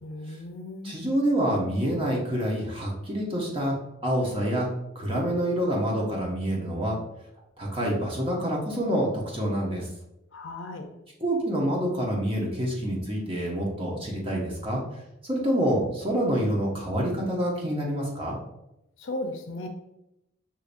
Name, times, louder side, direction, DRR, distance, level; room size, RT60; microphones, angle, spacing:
voice 1, 0.0-1.0 10.3-10.9 19.0-19.7, left 1 dB, 70° left, 4 dB, 0.7 m, -36 dB
voice 2, 0.8-3.7 4.0-4.7 4.9-7.0 7.6-9.9 11.2-14.8 15.2-18.4, equal, 25° right, -2 dB, 1.0 m, -27 dB
6.7 x 2.8 x 2.6 m, 0.87 s
head